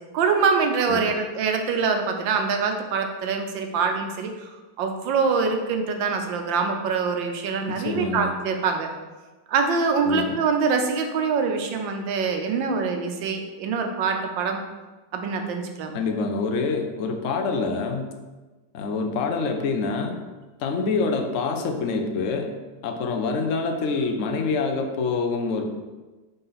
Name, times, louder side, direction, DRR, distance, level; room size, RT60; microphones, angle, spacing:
voice 1, 0.0-4.5 4.8-8.9 9.5-14.6 15.1-16.0, right 5 dB, 90° right, 4 dB, 1.5 m, -24 dB
voice 2, 7.7-8.3 10.0-10.4 15.9-18.1 18.7-20.2 20.6-22.5 22.8-25.7, left 4 dB, 60° left, 4 dB, 0.9 m, -26 dB
5.6 x 3.9 x 5.6 m, 1.2 s
omnidirectional pair, 2.0 m